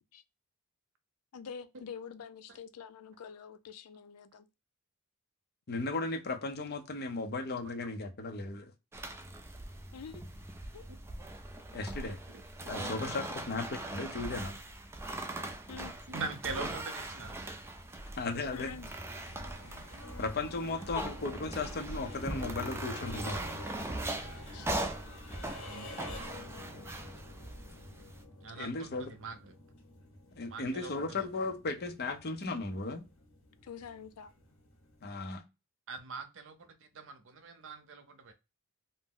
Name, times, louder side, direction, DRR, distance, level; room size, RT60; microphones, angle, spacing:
voice 1, 1.3-4.5 9.9-10.2 10.7-10.8 12.7-13.0 15.7-15.9 18.5-18.9 24.5-24.7 33.6-34.3, left 6 dB, 90° left, 0.4 m, -46 dB
voice 2, 5.7-8.7 11.7-12.2 12.6-14.6 18.2-18.7 20.2-23.4 28.5-29.1 30.4-33.1 35.0-35.4, left 3 dB, 45° left, 0.6 m, -36 dB
sound 1, 8.9-28.2, right 1 dB, 10° right, 0.3 m, -41 dB
sound 2, 15.8-35.1, left 1 dB, 65° left, 1.4 m, -48 dB
voice 3, 16.1-17.5 28.4-29.5 30.5-31.3 35.9-38.3, right 4 dB, 60° right, 0.6 m, -42 dB
2.6 x 2.0 x 3.6 m
head